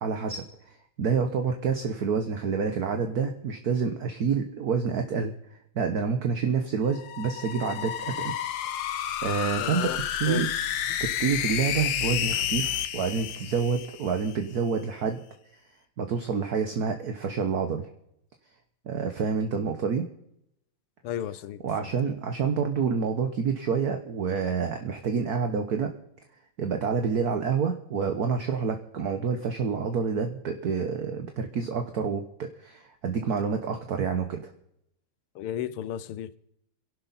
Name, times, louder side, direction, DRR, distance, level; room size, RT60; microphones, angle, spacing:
voice 1, 0.0-5.3 5.7-8.4 9.2-9.9 10.2-10.5 11.0-15.2 16.0-17.9 18.8-20.1 21.6-25.9 26.6-34.5, right 6 dB, 50° right, 1.4 m, -28 dB
sound 1, 6.9-14.4, left 10 dB, 65° left, 1.4 m, -30 dB
voice 2, 9.6-10.5 21.0-21.9 35.4-36.4, left 11 dB, 80° left, 1.7 m, -34 dB
28.5 x 11.5 x 4.2 m
omnidirectional pair, 2.4 m